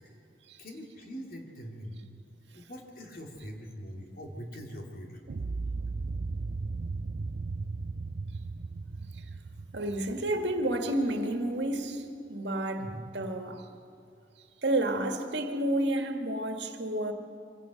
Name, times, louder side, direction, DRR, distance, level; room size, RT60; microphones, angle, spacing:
voice 1, 0.6-2.0 2.5-5.6 12.8-13.1, equal, 50° left, 2.9 m, -43 dB
sound 1, 5.3-11.3, right 3 dB, 55° right, 0.4 m, -36 dB
voice 2, 9.7-12.9 13.1-13.7 14.6-17.1, right 1 dB, 75° right, 1.8 m, -30 dB
25.0 x 17.0 x 6.5 m
head